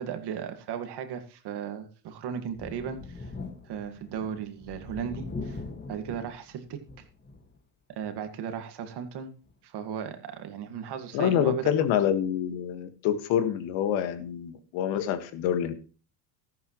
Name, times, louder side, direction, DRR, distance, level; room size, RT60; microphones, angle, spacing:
voice 1, 0.0-3.3 3.6-5.6 5.9-6.8 8.0-9.3 9.6-11.7, right 8 dB, 55° right, 7 dB, 2.0 m, -36 dB
Thunder, 2.5-7.6 8.0-8.1 9.5-9.6, left 3 dB, 20° left, 1.8 m, -41 dB
voice 2, 11.1-15.7, left 9 dB, 70° left, 9 dB, 1.8 m, -26 dB
13.5 x 12.0 x 3.1 m, 0.36 s
supercardioid pair, 95°, 47 cm